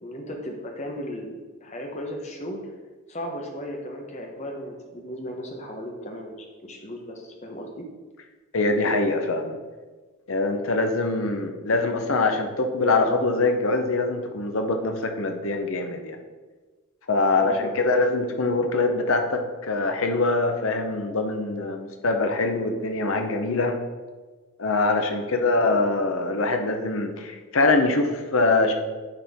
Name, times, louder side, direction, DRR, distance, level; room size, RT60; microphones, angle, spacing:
voice 1, 0.0-2.6 3.1-7.9 17.3-17.7 25.1-25.4, equal, 30° left, 1 dB, 1.0 m, -36 dB
voice 2, 8.5-9.6 10.3-16.2 17.1-23.7 24.6-28.7, left 3 dB, 65° left, 5 dB, 0.8 m, -23 dB
9.0 x 4.4 x 3.6 m, 1.3 s
head